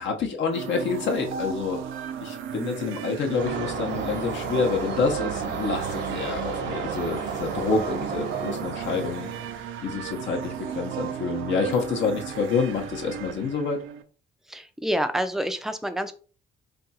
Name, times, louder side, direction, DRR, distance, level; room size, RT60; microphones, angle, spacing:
voice 1, 0.0-1.8 2.2-9.3 9.8-13.8, left 4 dB, 65° left, 2 dB, 0.7 m, -28 dB
sound 1, 0.5-14.0, right 9 dB, 90° right, 0.4 m, -35 dB
sound 2, 3.4-9.7, right 5 dB, 65° right, 0.8 m, -33 dB
voice 2, 14.5-16.1, equal, ahead, 8 dB, 0.4 m, -27 dB
2.5 x 2.3 x 4.0 m, 0.38 s
cardioid pair, 90°, 20 cm